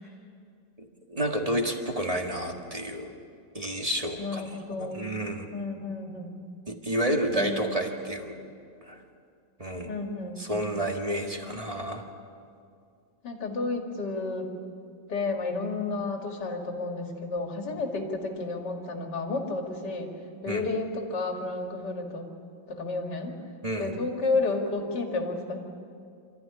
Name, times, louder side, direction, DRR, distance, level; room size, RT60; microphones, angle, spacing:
voice 1, 0.8-3.1 3.5-5.5 6.7-8.3 8.8-9.0 9.6-9.9 10.4-12.0 20.5-20.7 23.6-23.9, right 1 dB, 20° right, 2 dB, 1.7 m, -30 dB
voice 2, 4.2-5.0 5.5-6.4 7.3-7.9 9.8-10.4 13.2-14.5 15.1-20.1 20.4-22.3 22.7-23.4 23.8-25.6, left 3 dB, 50° left, 2 dB, 3.0 m, -31 dB
27.0 x 14.5 x 10.0 m, 2.3 s
omnidirectional pair, 2.4 m